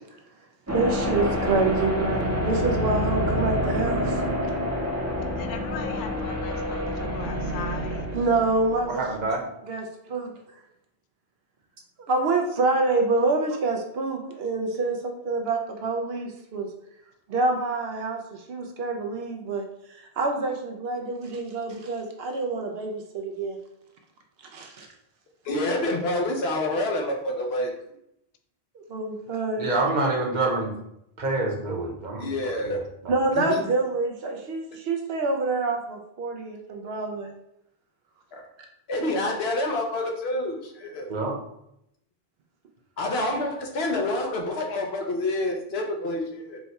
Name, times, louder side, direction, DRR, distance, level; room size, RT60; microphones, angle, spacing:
sound 1, 0.7-9.2, equal, 20° right, 0.7 m, -27 dB
voice 1, 0.7-4.2 8.1-9.0 9.7-10.3 12.1-16.7 17.3-19.6 19.9-23.6 24.5-24.9 28.7-29.7 33.1-37.3, right 3 dB, 75° right, 3 dB, 0.8 m, -27 dB
voice 2, 5.4-8.1, left 7 dB, 60° left, 5 dB, 0.6 m, -39 dB
voice 3, 8.9-9.4 29.6-30.7 31.2-33.1 41.1-41.3, right 2 dB, 50° right, 0 dB, 0.9 m, -27 dB
voice 4, 25.4-27.7 32.2-32.8 33.4-33.6 38.3-38.4 38.9-41.1 43.0-46.6, left 1 dB, 80° left, 2 dB, 1.1 m, -27 dB
4.6 x 2.3 x 4.0 m, 0.79 s
omnidirectional pair, 1.0 m